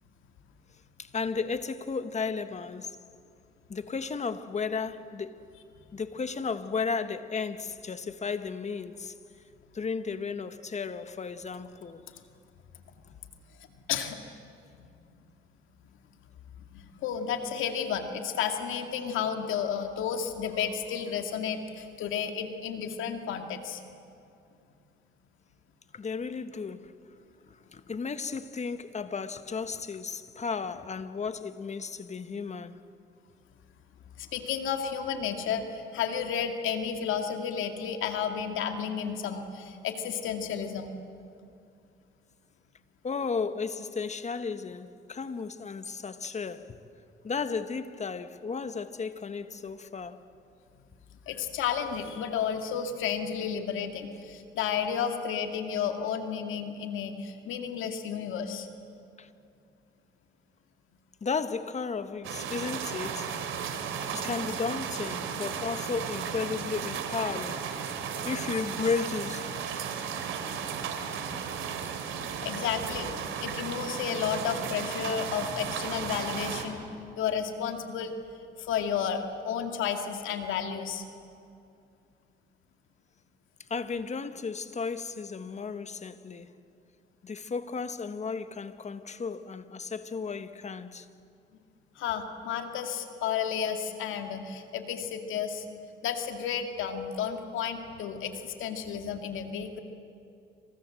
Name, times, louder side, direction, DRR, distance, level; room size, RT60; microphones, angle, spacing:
voice 1, 1.0-3.0 3.7-5.5 5.9-9.1 9.7-12.0 25.9-26.9 27.5-32.8 43.0-46.8 47.2-50.2 59.2-59.3 61.2-63.4 64.1-68.0 68.2-69.6 72.5-72.6 83.7-86.5 87.2-91.1, left 5 dB, 35° left, 1.4 m, -34 dB
voice 2, 13.6-14.2 14.8-14.9 16.5-23.8 34.2-40.9 51.3-58.7 72.4-73.1 73.4-76.9 77.2-78.1 78.6-81.0 92.0-95.6 96.0-99.8, left 7 dB, 85° left, 2.4 m, -32 dB
sound 1, 62.2-76.7, right 7 dB, 85° right, 2.9 m, -35 dB
28.0 x 26.5 x 7.7 m
cardioid pair, 90°, 20 cm